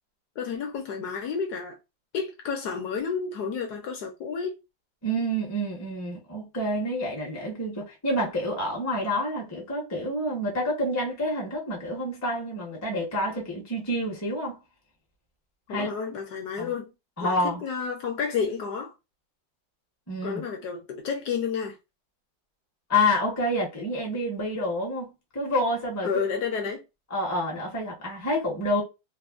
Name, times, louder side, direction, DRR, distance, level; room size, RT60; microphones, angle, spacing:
voice 1, 0.4-1.8 2.1-4.6 15.7-16.9 17.2-18.9 20.2-21.8 26.0-26.8, left 6 dB, 70° left, 1.0 m, -31 dB
voice 2, 5.0-14.6 15.7-15.9 16.6-16.7 17.2-17.6 20.1-20.4 22.9-26.1 27.1-28.8, left 1 dB, 20° left, 0.4 m, -28 dB
3.3 x 2.1 x 2.4 m
omnidirectional pair, 2.0 m